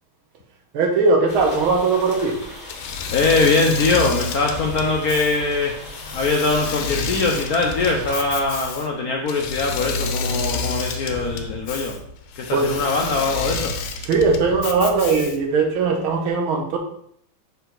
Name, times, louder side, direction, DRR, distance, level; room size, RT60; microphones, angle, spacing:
voice 1, 0.7-2.4 12.5-12.9 14.0-16.8, right 4 dB, 80° right, 2 dB, 1.8 m, -19 dB
sound 1, 1.3-8.4, left 1 dB, 10° left, 1.3 m, -38 dB
Engine / Mechanisms, 2.7-15.6, left 4 dB, 90° left, 1.5 m, -29 dB
voice 2, 3.1-5.8 6.1-11.9 12.4-13.7, left 3 dB, 65° left, 1 dB, 0.9 m, -22 dB
5.5 x 4.6 x 3.9 m, 0.68 s
omnidirectional pair, 2.3 m